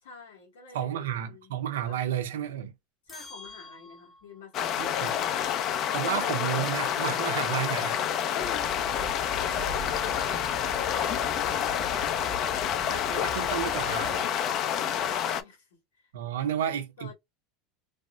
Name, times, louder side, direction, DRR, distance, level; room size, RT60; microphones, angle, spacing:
voice 1, 0.0-2.0 3.0-5.6 8.2-8.8 9.2-11.5 14.5-16.1 16.4-17.1, left 5 dB, 85° left, 1.9 m, -48 dB
voice 2, 0.7-2.7 4.8-5.1 5.9-8.1 12.9-14.5 16.1-17.1, right 10 dB, 85° right, 0.6 m, -32 dB
sound 1, 3.1-4.5, left 3 dB, 15° left, 0.8 m, -48 dB
sound 2, 4.5-15.4, left 9 dB, 50° left, 0.5 m, -28 dB
sound 3, 8.4-14.2, equal, 10° right, 0.5 m, -41 dB
3.4 x 2.0 x 2.5 m
supercardioid pair, 105°, 0 cm